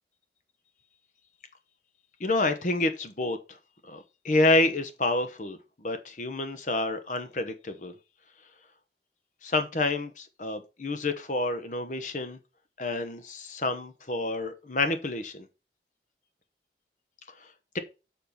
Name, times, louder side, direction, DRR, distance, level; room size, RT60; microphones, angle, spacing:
voice 1, 2.2-3.4 3.8-7.9 9.4-12.4 12.8-15.5 17.4-17.5, left 2 dB, 45° left, 1.0 m, -28 dB
7.1 x 5.9 x 5.2 m
head